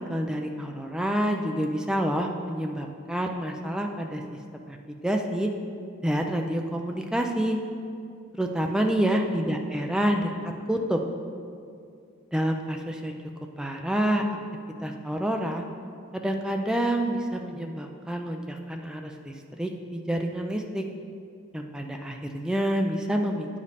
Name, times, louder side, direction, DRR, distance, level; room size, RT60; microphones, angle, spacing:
voice 1, 0.1-4.2 4.5-5.5 6.0-7.6 8.4-10.3 10.7-11.0 12.3-13.2 13.6-14.3 14.8-15.6 16.1-20.8 21.5-23.5, right 1 dB, 5° right, 3 dB, 0.4 m, -28 dB
9.5 x 5.1 x 4.1 m, 2.3 s
head